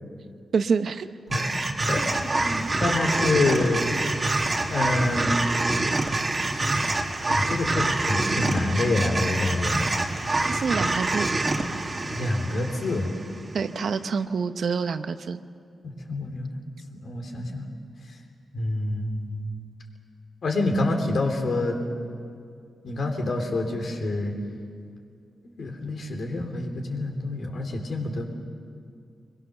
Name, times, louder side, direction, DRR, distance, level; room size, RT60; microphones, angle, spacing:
voice 1, 0.5-1.1 10.4-11.3 13.5-15.4, right 5 dB, 65° right, 10 dB, 0.8 m, -27 dB
voice 2, 1.3-2.0 2.4-3.9 4.7-5.9 6.4-6.7 7.3-9.9 12.1-13.1 15.8-16.6 17.0-17.6 18.5-19.6 20.4-21.9 22.8-24.3 25.4-28.3, left 2 dB, 60° left, 2 dB, 3.2 m, -27 dB
sound 1, 1.3-13.6, right 2 dB, 30° right, 1.8 m, -26 dB
23.5 x 22.0 x 6.7 m, 2.3 s
wide cardioid pair, 115°, 0 cm